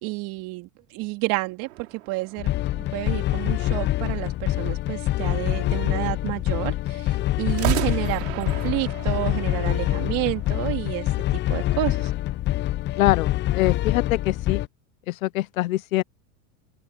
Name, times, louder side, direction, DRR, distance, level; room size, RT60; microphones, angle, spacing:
voice 1, 0.0-2.5 2.9-12.1, right 23 dB, 55° right, 3.4 m, -30 dB
sound 1, 1.6-3.4 7.5-10.6, right 17 dB, 75° right, 6.0 m, -34 dB
sound 2, 2.4-14.7, left 15 dB, 30° left, 0.5 m, -25 dB
voice 2, 13.0-14.6 15.1-16.0, left 16 dB, 90° left, 0.6 m, -24 dB
open air
hypercardioid pair, 110°, 40 cm